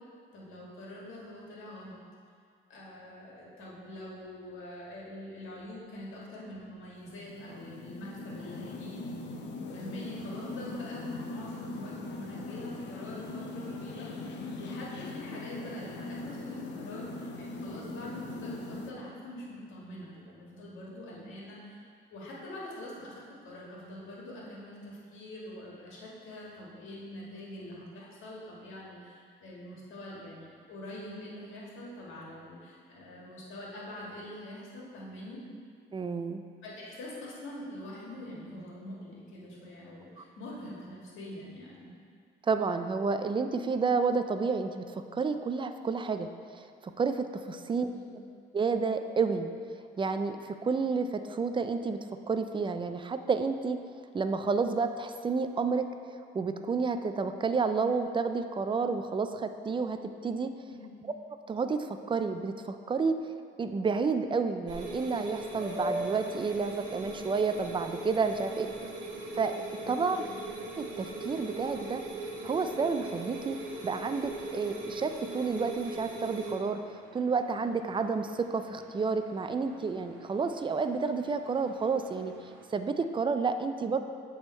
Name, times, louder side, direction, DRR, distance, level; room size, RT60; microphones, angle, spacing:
voice 1, 0.3-2.0 2.7-9.2 9.7-21.8 22.1-35.4 36.6-41.9 47.8-48.1 60.7-60.9 68.4-68.7 69.8-70.4, left 1 dB, 80° left, -4 dB, 1.6 m, -44 dB
sound 1, 7.1-18.9, left 3 dB, 65° left, 0.7 m, -41 dB
voice 2, 35.9-36.4 40.2-40.3 42.5-46.3 46.5-47.9 48.5-49.5 50.0-53.8 54.1-55.9 56.3-60.5 61.5-63.2 63.6-68.7 69.4-69.6 69.9-70.2 70.8-72.0 72.4-76.8 77.1-82.3 82.7-84.0, right 4 dB, 25° right, 8 dB, 0.3 m, -30 dB
sound 2, 64.7-76.5, right 2 dB, 70° right, 1.1 m, -40 dB
sound 3, 65.5-82.6, right 1 dB, 85° right, 0.8 m, -46 dB
7.9 x 3.5 x 4.2 m, 2.1 s
cardioid pair, 90°, 20 cm